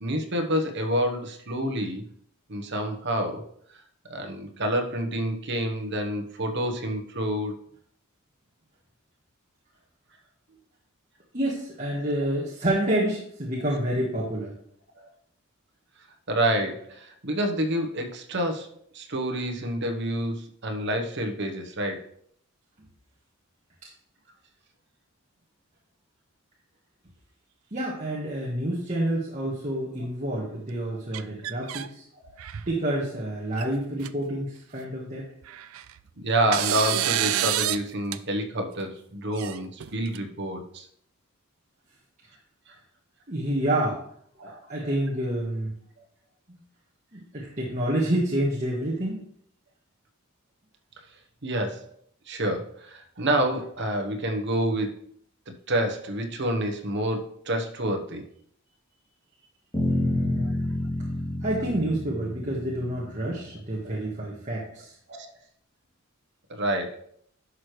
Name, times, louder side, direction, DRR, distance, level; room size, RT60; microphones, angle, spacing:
voice 1, 0.0-2.1 2.5-3.5 4.1-7.5 15.0-15.1 16.3-22.0 36.2-40.8 42.7-42.8 44.4-44.9 51.4-51.9 52.3-55.1 55.7-58.2 60.4-60.5 63.8-64.0 65.1-65.3 66.5-67.0, right 1 dB, 55° right, 5 dB, 1.2 m, -28 dB
voice 2, 11.3-14.5 27.7-32.0 32.7-35.2 43.3-44.0 44.4-45.7 47.1-49.2 59.8-60.5 61.4-64.9, right 1 dB, 35° right, -5 dB, 1.6 m, -28 dB
sound 1, 31.1-31.9 32.3-32.8 33.6-33.7 34.0-34.1 35.4-36.0 36.5-37.8 38.1-38.2 39.3-40.2, right 12 dB, 70° right, 0.4 m, -28 dB
sound 2, 59.7-63.7, left 1 dB, 20° left, 2.9 m, -29 dB
11.0 x 6.3 x 3.3 m, 0.66 s
head